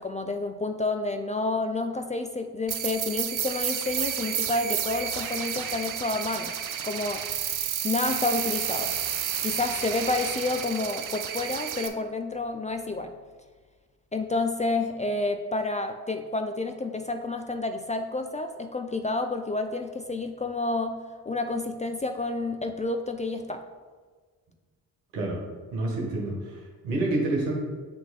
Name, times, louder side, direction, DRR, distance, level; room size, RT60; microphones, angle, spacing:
voice 1, 0.0-6.6 6.8-7.3 7.8-8.9 9.4-13.1 14.1-23.6, left 2 dB, 20° left, 6 dB, 0.3 m, -29 dB
sound 1, 2.7-11.9, right 9 dB, 45° right, 0.6 m, -31 dB
voice 2, 25.7-27.5, right 2 dB, 85° right, -1 dB, 1.3 m, -28 dB
7.6 x 3.1 x 4.0 m, 1.5 s
hypercardioid pair, 45°, 46 cm